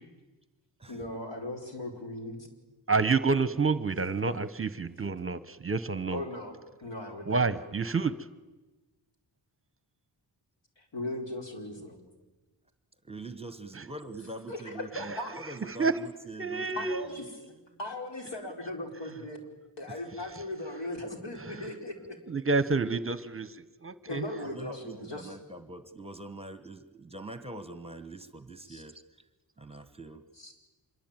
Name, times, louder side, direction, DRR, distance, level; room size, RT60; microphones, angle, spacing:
voice 1, 0.9-2.5 6.1-8.0 10.8-12.0 14.5-15.3 16.8-17.3 17.8-19.4 19.8-22.2 24.1-25.3 28.7-28.8 30.4-30.5, left 1 dB, 80° left, 3 dB, 4.9 m, -38 dB
voice 2, 2.9-6.2 7.3-8.1 15.8-15.9 16.4-17.1 22.3-24.2, right 4 dB, 30° right, 14 dB, 0.8 m, -28 dB
voice 3, 13.0-17.2 19.9-20.0 24.4-29.0 29.6-30.2, right 2 dB, 15° right, 10 dB, 1.2 m, -44 dB
26.0 x 22.5 x 9.0 m, 1.2 s
wide cardioid pair, 170°, 43 cm